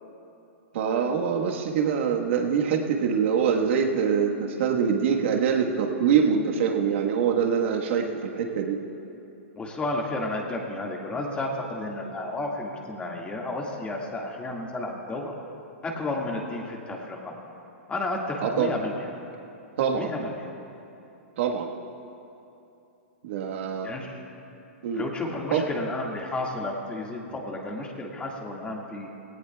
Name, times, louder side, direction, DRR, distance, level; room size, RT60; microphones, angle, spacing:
voice 1, 0.7-8.8 18.4-18.7 19.8-20.1 21.4-21.7 23.2-23.9 24.8-25.0 25.5-25.6, right 7 dB, 60° right, 1 dB, 1.4 m, -24 dB
voice 2, 9.6-15.3 15.8-17.3 17.9-18.9 19.9-20.5 23.8-24.2 24.9-29.1, left 2 dB, 15° left, 0 dB, 1.9 m, -32 dB
18.5 x 18.0 x 2.3 m, 2.8 s
hypercardioid pair, 125°, 7 cm